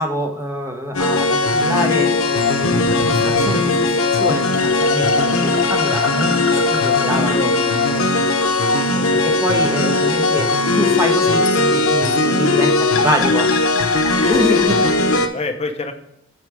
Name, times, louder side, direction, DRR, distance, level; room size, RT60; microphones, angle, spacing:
voice 1, 0.0-6.3 6.7-7.9 9.1-13.5 14.3-14.8, equal, 15° right, 3 dB, 1.0 m, -25 dB
sound 1, 0.9-15.3, left 3 dB, 90° left, 0.8 m, -18 dB
voice 2, 6.5-8.1 8.4-9.3 14.2-15.9, left 2 dB, 30° left, 4 dB, 0.9 m, -31 dB
8.2 x 4.2 x 4.9 m, 0.80 s
head